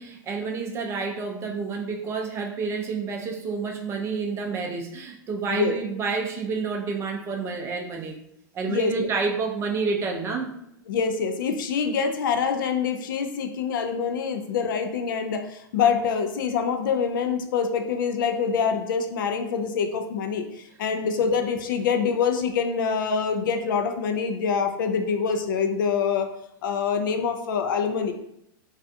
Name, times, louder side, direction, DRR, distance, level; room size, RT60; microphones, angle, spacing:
voice 1, 0.0-8.2 8.5-10.5 20.9-21.0, right 4 dB, 25° right, 2 dB, 0.4 m, -29 dB
voice 2, 10.9-26.3 26.6-28.1, left 6 dB, 75° left, 7 dB, 0.4 m, -25 dB
2.4 x 2.3 x 2.5 m, 0.77 s
hypercardioid pair, 125°, 11 cm